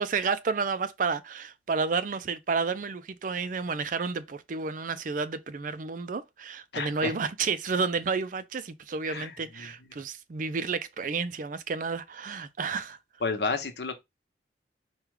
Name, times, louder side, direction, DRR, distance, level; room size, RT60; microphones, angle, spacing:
voice 1, 0.0-13.0, right 4 dB, 45° right, 0.4 m, -31 dB
voice 2, 6.7-7.1 9.1-9.7 13.2-13.9, left 4 dB, 70° left, 1.0 m, -31 dB
4.8 x 2.3 x 4.7 m
head